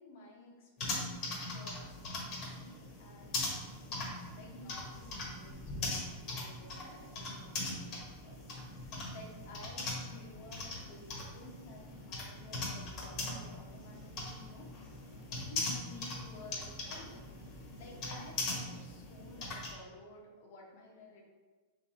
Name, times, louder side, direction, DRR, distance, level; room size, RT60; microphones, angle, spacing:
voice 1, 0.0-14.7 15.5-21.2, left 2 dB, 65° left, -1 dB, 1.1 m, -54 dB
sound 1, 0.8-19.7, left 2 dB, 40° left, 1.2 m, -41 dB
3.4 x 3.3 x 4.2 m, 1.3 s
supercardioid pair, 150°, 0 cm